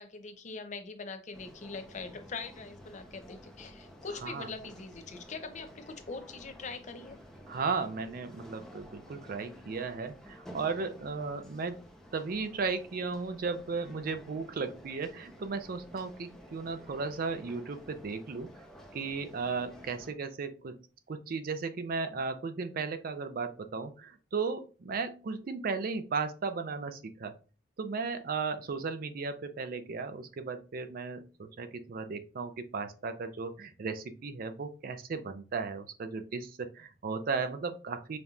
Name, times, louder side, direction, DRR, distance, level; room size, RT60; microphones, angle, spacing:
voice 1, 0.0-7.2, left 4 dB, 40° left, 7 dB, 0.5 m, -42 dB
sound 1, 1.3-20.1, equal, 5° left, 0.7 m, -52 dB
voice 2, 7.5-11.8 12.1-18.6 18.9-20.8 21.1-27.3 27.8-38.2, right 4 dB, 55° right, 10 dB, 0.4 m, -35 dB
5.2 x 2.8 x 2.4 m, 0.35 s
head